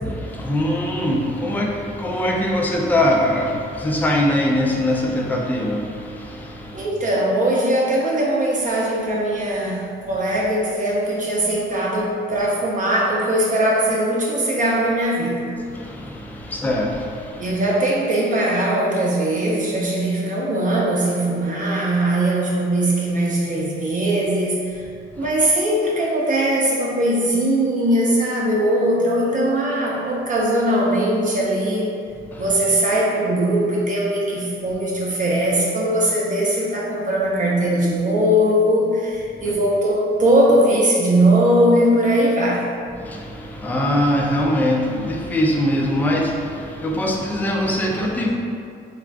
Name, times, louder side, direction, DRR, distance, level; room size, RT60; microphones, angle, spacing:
voice 1, 0.0-6.9 15.7-17.5 32.3-32.5 43.0-48.3, left 1 dB, 10° left, -1 dB, 0.3 m, -22 dB
voice 2, 6.7-15.5 17.4-24.8 25.2-31.9 32.4-42.7, right 1 dB, 40° right, -4 dB, 0.5 m, -20 dB
2.4 x 2.4 x 3.3 m, 2.3 s
cardioid pair, 90°, 20 cm